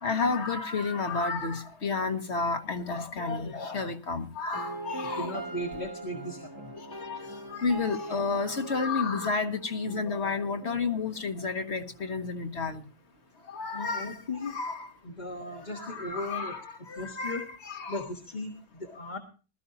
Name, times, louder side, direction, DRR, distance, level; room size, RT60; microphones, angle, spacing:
voice 1, 0.0-5.3 6.8-12.8 13.5-14.2 14.5-14.9 15.7-16.6 16.9-18.0, left 4 dB, 60° left, 1.9 m, -31 dB
sound 1, 4.5-12.5, right 2 dB, 20° right, 0.9 m, -41 dB
voice 2, 5.0-6.7 13.7-14.5 15.0-17.5 17.9-19.2, left 1 dB, 35° left, 1.6 m, -37 dB
20.5 x 13.5 x 2.8 m
omnidirectional pair, 1.3 m